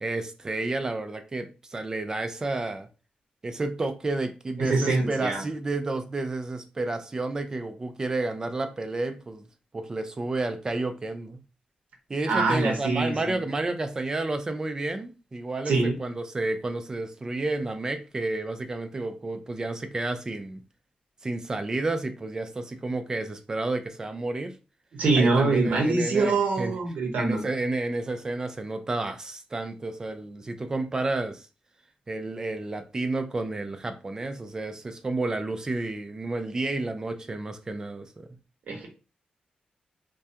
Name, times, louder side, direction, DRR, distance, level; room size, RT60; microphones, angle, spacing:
voice 1, 0.0-2.9 3.4-9.5 9.7-11.4 12.1-20.6 21.2-24.6 25.2-26.7 27.2-31.5 32.1-38.3, right 2 dB, 25° right, 0.3 m, -31 dB
voice 2, 4.6-5.4 12.3-13.3 15.7-15.9 24.9-27.4 38.7-38.9, right 3 dB, 85° right, 0.7 m, -24 dB
2.3 x 2.1 x 2.7 m
wide cardioid pair, 135°, 3 cm